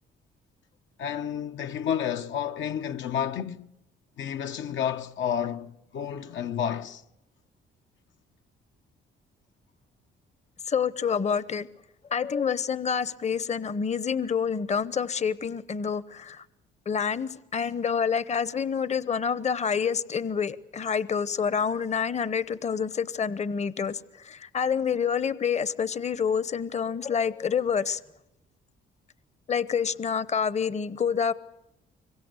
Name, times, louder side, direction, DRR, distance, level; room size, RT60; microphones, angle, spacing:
voice 1, 1.0-3.6 4.2-7.0, left 9 dB, 70° left, 0.9 m, -30 dB
voice 2, 10.7-11.7 12.1-16.4 16.9-28.0 29.5-31.3, left 6 dB, 35° left, 0.9 m, -27 dB
25.5 x 23.0 x 8.2 m
cardioid pair, 90°, 20 cm